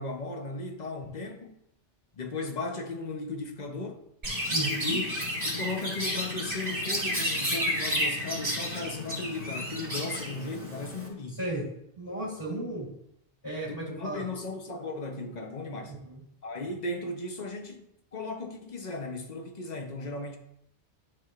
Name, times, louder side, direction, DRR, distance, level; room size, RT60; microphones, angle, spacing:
voice 1, 0.0-1.6 2.2-4.0 4.8-5.2 5.5-11.4 13.7-15.9 16.4-20.4, left 2 dB, 40° left, 0.9 m, -36 dB
Chirp tweet, 4.2-11.1, equal, 35° right, 3.0 m, -31 dB
voice 2, 4.5-5.0 11.3-11.6 11.9-12.9 13.4-14.3 15.9-16.1, right 2 dB, 20° left, 3.2 m, -34 dB
12.5 x 4.9 x 2.5 m
omnidirectional pair, 1.2 m